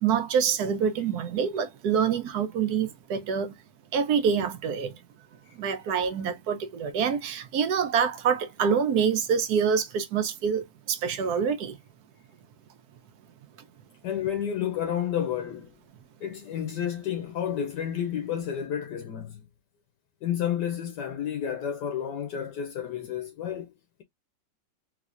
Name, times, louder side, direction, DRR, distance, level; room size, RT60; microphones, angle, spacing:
voice 1, 0.0-3.5 3.9-4.9 5.5-11.8, right 7 dB, 65° right, 1.1 m, -26 dB
voice 2, 14.0-15.7 16.2-19.4 20.2-23.7, left 9 dB, 75° left, 1.2 m, -31 dB
3.5 x 3.1 x 2.5 m
omnidirectional pair, 2.0 m